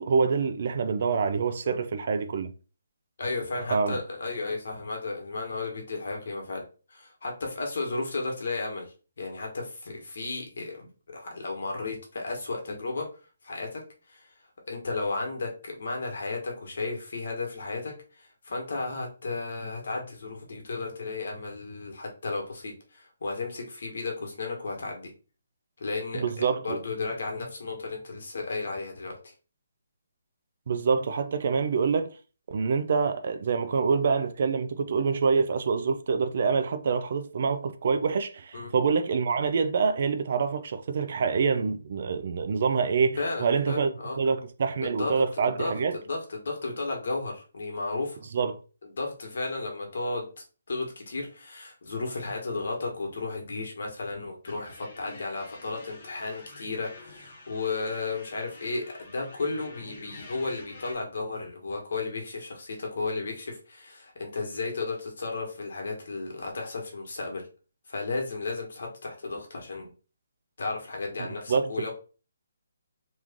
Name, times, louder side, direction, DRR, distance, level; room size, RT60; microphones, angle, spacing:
voice 1, 0.0-2.5 3.7-4.0 26.1-26.8 30.7-32.1 32.5-43.9 44.2-46.0 48.3-48.6 71.5-71.9, right 5 dB, 40° right, 0.4 m, -26 dB
voice 2, 3.2-13.1 13.4-14.3 14.7-25.1 25.8-29.3 38.5-38.7 43.2-44.2 44.8-48.2 48.8-50.3 50.7-67.5 67.9-69.9 70.6-71.9, left 3 dB, 60° left, 1.3 m, -34 dB
sound 1, 54.4-60.9, left 3 dB, 35° left, 0.9 m, -48 dB
3.1 x 2.4 x 3.6 m
hypercardioid pair, 175°, 0 cm